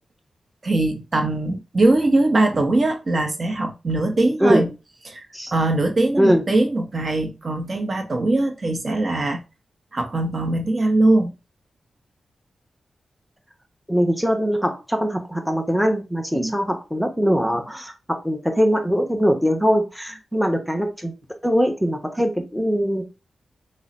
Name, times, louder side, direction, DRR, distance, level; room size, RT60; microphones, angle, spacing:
voice 1, 0.6-4.7 5.0-5.2 5.5-9.4 9.9-11.3 16.3-16.5, right 2 dB, 45° right, 4 dB, 0.7 m, -21 dB
voice 2, 13.9-21.1 21.4-23.0, equal, ahead, 4 dB, 0.9 m, -21 dB
3.8 x 2.0 x 4.0 m, 0.28 s
cardioid pair, 70°, 0 cm